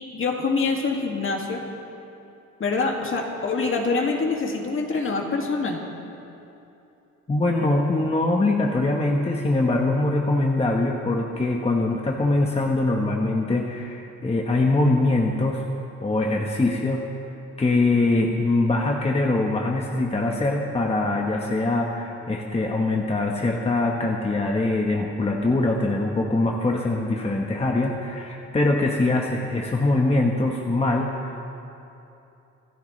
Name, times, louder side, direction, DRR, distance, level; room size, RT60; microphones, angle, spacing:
voice 1, 0.1-1.6 2.6-5.8, left 4 dB, 45° left, 1 dB, 2.3 m, -25 dB
voice 2, 7.3-15.7 16.0-17.0 17.6-31.4, left 2 dB, 20° left, 0 dB, 1.2 m, -23 dB
26.0 x 13.0 x 3.3 m, 2.8 s
cardioid pair, 90°, 30 cm